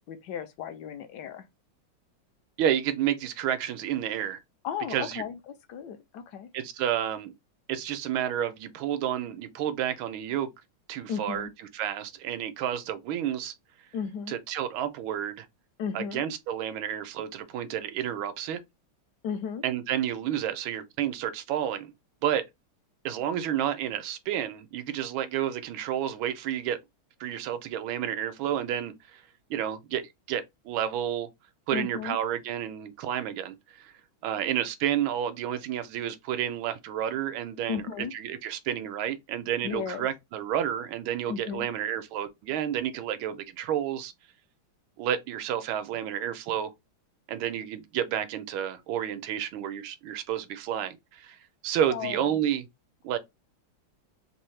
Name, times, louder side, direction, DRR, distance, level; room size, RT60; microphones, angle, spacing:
voice 1, 0.1-1.5 4.6-6.5 11.1-11.5 13.9-14.4 15.8-16.2 19.2-19.6 31.7-32.2 37.7-38.1 39.6-40.1 41.3-41.7 51.9-52.2, left 7 dB, 70° left, 1.0 m, -35 dB
voice 2, 2.6-4.4 4.9-5.2 6.5-7.3 7.7-10.5 10.9-11.5 11.7-13.5 14.3-15.5 15.9-18.6 19.6-21.9 22.2-22.4 23.0-26.8 27.2-29.2 29.5-31.3 31.7-33.9 34.2-37.8 38.1-44.1 45.0-46.7 47.3-51.4 51.6-52.6 53.0-53.2, right 10 dB, 80° right, 1.4 m, -30 dB
3.6 x 2.7 x 3.1 m
omnidirectional pair, 2.2 m